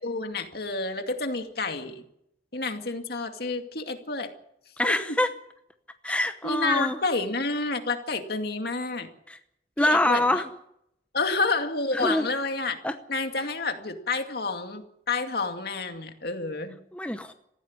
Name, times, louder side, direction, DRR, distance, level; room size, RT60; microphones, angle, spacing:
voice 1, 0.0-1.9 2.5-4.3 4.8-5.0 6.4-9.1 9.8-10.4 11.1-12.8 13.1-16.8, left 3 dB, 60° left, 5 dB, 2.3 m, -29 dB
voice 2, 4.8-5.3 6.0-7.0 9.3-9.4 9.8-10.5 11.9-12.2 12.8-12.9 16.9-17.3, left 1 dB, 5° left, 7 dB, 0.9 m, -25 dB
19.0 x 15.5 x 9.6 m, 0.79 s
head